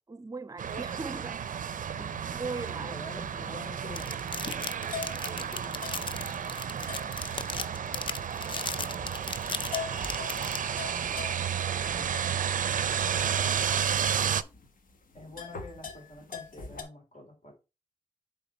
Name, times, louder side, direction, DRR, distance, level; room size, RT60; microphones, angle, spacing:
voice 1, 0.1-1.4 2.2-3.0, right 3 dB, 25° right, 0.6 m, -43 dB
sound 1, 0.6-14.4, right 8 dB, 70° right, 0.4 m, -32 dB
sound 2, 0.7-16.8, left 5 dB, 80° left, 1.3 m, -45 dB
voice 2, 2.8-4.1 4.8-6.1 8.5-9.1 11.9-12.2 15.1-17.5, left 1 dB, 55° left, 3.0 m, -47 dB
sound 3, 3.9-10.6, left 4 dB, 35° left, 0.5 m, -35 dB
8.0 x 3.6 x 4.2 m
wide cardioid pair, 90°, 14 cm